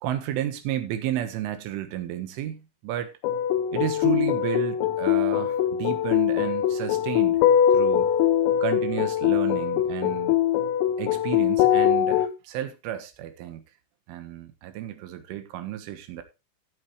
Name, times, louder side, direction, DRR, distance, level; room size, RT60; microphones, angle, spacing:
voice 1, 0.0-3.1 3.7-7.4 7.7-8.1 8.6-10.4 11.0-13.6 14.1-16.2, right 12 dB, 75° right, 3.7 m, -32 dB
sound 1, 3.2-12.3, left 10 dB, 85° left, 3.6 m, -22 dB
14.0 x 8.4 x 3.2 m
omnidirectional pair, 5.9 m